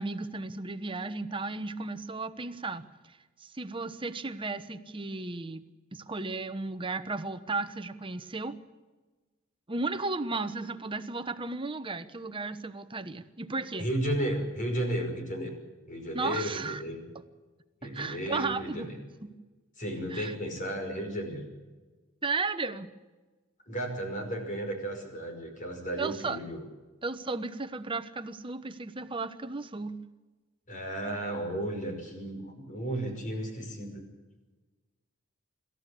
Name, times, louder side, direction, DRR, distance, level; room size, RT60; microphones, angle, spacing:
voice 1, 0.0-5.6 5.9-8.6 9.7-13.9 16.1-16.8 17.8-18.9 19.2-19.3 20.1-20.3 22.2-22.9 26.0-26.4 27.0-30.0, right 3 dB, 25° right, 10 dB, 1.1 m, -34 dB
voice 2, 13.8-15.5 15.9-17.1 17.8-18.9 19.8-21.4 23.7-26.6 30.7-34.0, right 1 dB, 35° left, 4 dB, 5.5 m, -34 dB
26.5 x 14.0 x 8.5 m, 1.3 s
head